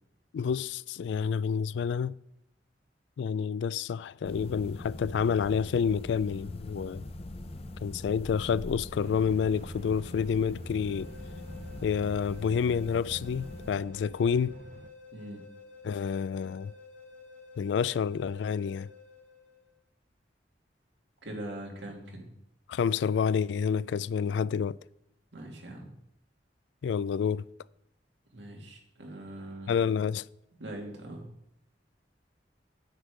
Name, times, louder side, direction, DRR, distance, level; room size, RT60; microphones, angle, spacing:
voice 1, 0.3-2.2 3.2-7.0 7.8-11.1 11.8-14.6 15.8-16.7 17.6-18.9 22.7-24.8 26.8-27.4 29.7-30.3, left 6 dB, 80° left, 0.3 m, -29 dB
sound 1, 4.2-13.8, left 1 dB, 35° left, 0.6 m, -42 dB
sound 2, 9.0-14.9, right 2 dB, 45° right, 0.5 m, -51 dB
sound 3, 10.8-19.7, left 4 dB, 10° left, 1.7 m, -51 dB
voice 2, 21.2-22.3 25.3-26.0 28.3-29.7 30.6-31.3, right 1 dB, 85° right, 2.4 m, -42 dB
9.9 x 7.8 x 5.0 m
head